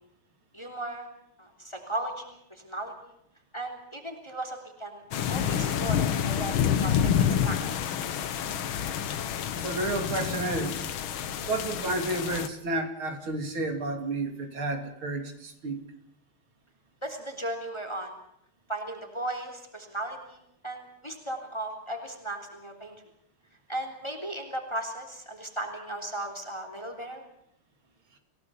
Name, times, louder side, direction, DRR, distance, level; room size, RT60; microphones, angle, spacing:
voice 1, 0.5-1.1 1.4-2.9 3.5-5.0 5.3-7.8 17.0-18.1 18.7-22.9 23.7-27.2, right 1 dB, 10° left, 4 dB, 3.2 m, -36 dB
sound 1, 5.1-12.5, left 8 dB, 75° left, 2.0 m, -28 dB
voice 2, 9.6-10.8 11.5-15.8, right 2 dB, 70° right, 6 dB, 3.7 m, -31 dB
28.0 x 17.0 x 7.1 m, 0.76 s
omnidirectional pair, 2.4 m